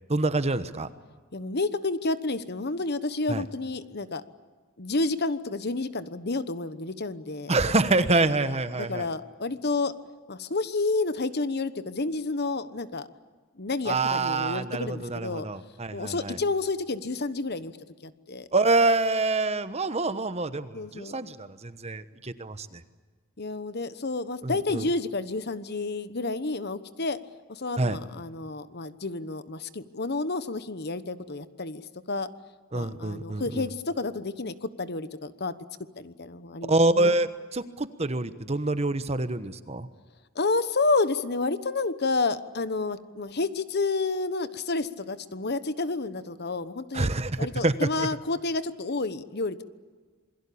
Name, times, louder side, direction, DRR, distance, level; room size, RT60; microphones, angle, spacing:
voice 1, 0.1-0.9 3.3-3.4 7.5-9.1 13.9-16.4 18.5-22.8 24.4-24.8 27.8-28.0 32.7-33.7 36.7-39.9 46.9-47.7, right 2 dB, 30° right, 12 dB, 1.1 m, -26 dB
voice 2, 1.3-4.2 4.8-7.6 8.4-8.5 8.8-10.0 10.3-13.1 13.6-15.5 15.9-17.7 18.0-18.5 20.7-21.2 23.4-27.2 27.5-32.3 32.7-35.5 36.0-37.1 40.3-47.1 47.4-49.6, left 3 dB, 50° left, 13 dB, 1.1 m, -30 dB
27.5 x 22.0 x 8.6 m, 1.4 s
head